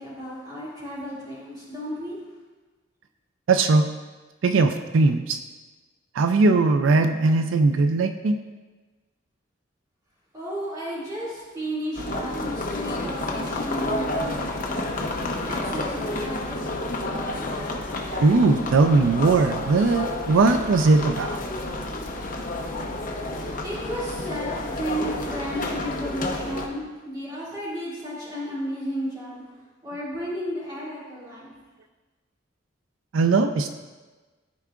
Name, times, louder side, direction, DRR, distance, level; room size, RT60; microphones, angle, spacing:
voice 1, 0.0-2.2 10.3-15.1 15.5-17.1 23.6-29.4 29.8-31.5, equal, 20° right, -8 dB, 2.3 m, -33 dB
voice 2, 3.5-3.9 4.4-5.4 6.1-8.4 18.2-21.4 33.1-33.7, right 3 dB, 75° right, 7 dB, 0.4 m, -19 dB
sound 1, 12.0-26.7, left 2 dB, 45° left, 0.8 m, -30 dB
13.5 x 4.6 x 2.5 m, 1.3 s
head